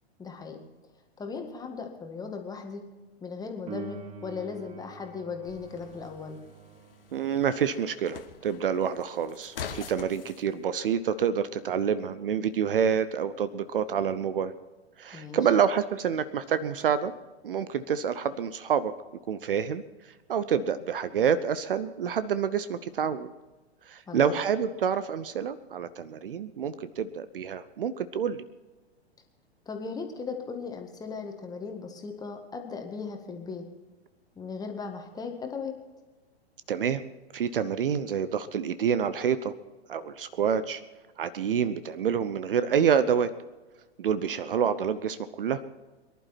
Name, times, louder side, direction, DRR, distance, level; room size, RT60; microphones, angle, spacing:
voice 1, 0.2-0.6 1.2-2.9 3.2-6.4 15.1-15.4 24.1-24.3 29.7-33.7 34.4-35.8, left 5 dB, 10° left, 4 dB, 1.8 m, -37 dB
Piano, 3.7-14.1 21.6-21.7, right 5 dB, 20° right, 0.8 m, -49 dB
sound 1, 5.4-10.4, left 7 dB, 55° left, 1.5 m, -44 dB
voice 2, 7.1-14.5 15.0-17.1 17.4-18.9 19.3-19.8 20.3-23.3 23.9-28.4 36.7-37.0 37.3-39.5 39.9-40.8 41.2-43.3 44.0-45.6, right 7 dB, 55° right, 14 dB, 0.8 m, -27 dB
23.0 x 11.5 x 4.3 m, 1.2 s
figure-of-eight pair, 105°, 33 cm